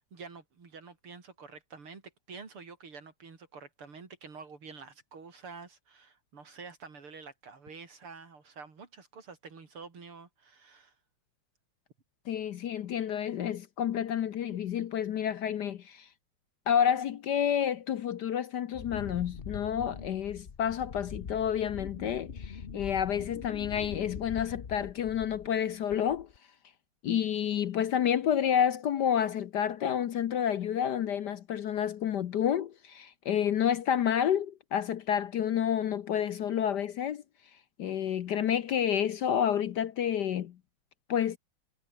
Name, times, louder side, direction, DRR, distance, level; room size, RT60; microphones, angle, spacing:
voice 1, 0.0-11.0, right 5 dB, 80° right, 4.5 m, -48 dB
voice 2, 12.3-16.1 16.7-26.3 27.0-37.2 37.8-40.6 41.1-41.4, left 9 dB, 60° left, 1.2 m, -29 dB
Wind, 18.7-25.6 25.9-26.4, left 6 dB, 40° left, 0.8 m, -43 dB
omnidirectional pair, 2.4 m